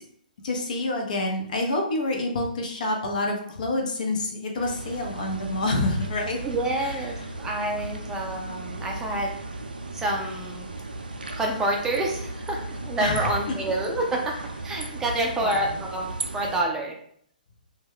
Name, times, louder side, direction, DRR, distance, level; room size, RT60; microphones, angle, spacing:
voice 1, 0.4-6.4 6.8-6.9 13.0-13.3 14.8-14.9 15.4-15.8, left 2 dB, 60° left, 1 dB, 0.7 m, -27 dB
sound 1, 4.6-16.6, right 2 dB, 85° right, 0.3 m, -36 dB
voice 2, 6.4-9.3 9.9-10.7 11.4-14.3 14.6-17.0, right 1 dB, 10° right, 0 dB, 0.4 m, -28 dB
2.2 x 2.2 x 3.4 m, 0.64 s
figure-of-eight pair, 130°, 5 cm